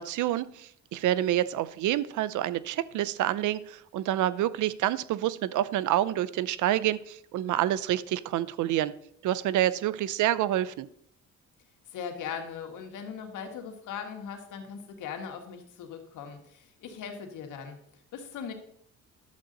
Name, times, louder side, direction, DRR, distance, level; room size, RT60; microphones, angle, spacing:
voice 1, 0.0-8.9 9.2-10.9, right 13 dB, 80° right, 18 dB, 0.6 m, -28 dB
voice 2, 11.9-17.8 18.1-18.5, left 7 dB, 85° left, 4 dB, 1.8 m, -39 dB
11.5 x 7.7 x 4.0 m, 0.68 s
cardioid pair, 90°, 30 cm